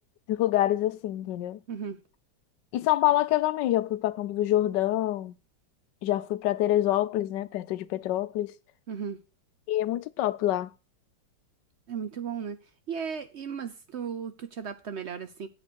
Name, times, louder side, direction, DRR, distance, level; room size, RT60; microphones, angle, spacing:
voice 1, 0.3-1.6 2.7-5.3 6.0-8.5 9.7-10.7, left 14 dB, 70° left, 1.2 m, -26 dB
voice 2, 1.7-2.0 8.9-9.2 11.9-12.6 12.9-15.5, right 7 dB, 65° right, 0.6 m, -35 dB
8.8 x 7.0 x 6.1 m
omnidirectional pair, 2.1 m